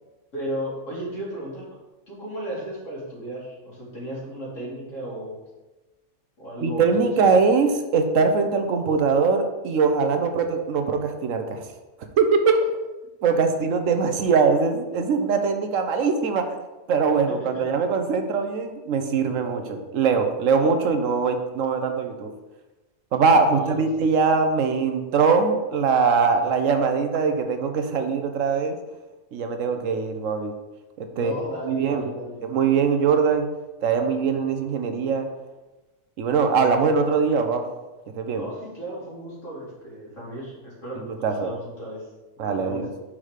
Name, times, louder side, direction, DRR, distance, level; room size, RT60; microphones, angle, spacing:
voice 1, 0.3-1.7 2.1-5.4 6.4-6.9 7.2-7.3 17.4-17.6 23.5-23.9 31.1-32.4 38.3-42.0 42.4-42.8, right 1 dB, 85° left, -7 dB, 3.1 m, -34 dB
voice 2, 6.6-11.6 12.2-12.8 13.2-16.5 16.9-22.3 23.1-28.8 29.3-30.5 31.0-31.3 31.6-32.1 32.4-33.5 33.8-35.3 36.2-37.6 38.1-38.4 40.9-41.5 42.4-42.9, right 5 dB, 85° right, 6 dB, 1.2 m, -22 dB
5.8 x 4.8 x 5.0 m, 1.1 s
omnidirectional pair, 1.3 m